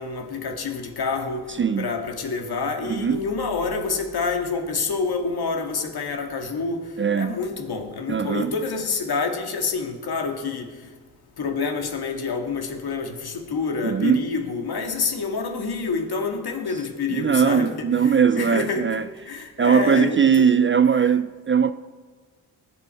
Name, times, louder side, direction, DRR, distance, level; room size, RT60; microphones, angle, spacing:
voice 1, 0.0-1.5 1.8-6.8 7.1-10.7 11.4-17.7 18.0-19.0 19.3-20.5 21.0-21.1, left 4 dB, 55° left, 2.0 m, -27 dB
voice 2, 1.6-1.9 2.8-3.2 7.0-7.4 8.1-8.5 13.8-14.2 17.1-19.1 19.4-21.7, right 7 dB, 30° right, 0.4 m, -20 dB
20.0 x 7.5 x 4.7 m
supercardioid pair, 50°, 44 cm